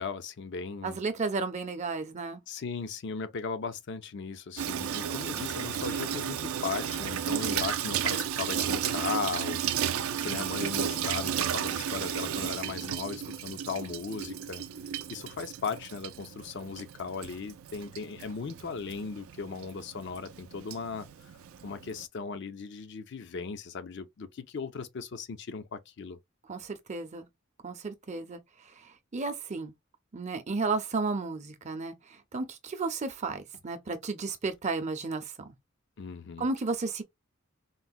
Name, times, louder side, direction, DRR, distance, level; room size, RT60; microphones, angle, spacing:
voice 1, 0.0-1.0 2.5-9.6 10.2-14.6 15.1-21.3 21.6-26.2 36.0-36.5, left 5 dB, 60° left, 0.5 m, -37 dB
voice 2, 0.8-2.4 26.5-27.3 27.6-29.7 30.1-35.5 36.4-37.0, right 3 dB, 35° right, 0.5 m, -33 dB
Water tap faucet / Sink (filling or washing), 4.6-22.0, right 9 dB, 90° right, 0.4 m, -34 dB
3.8 x 2.1 x 2.4 m
head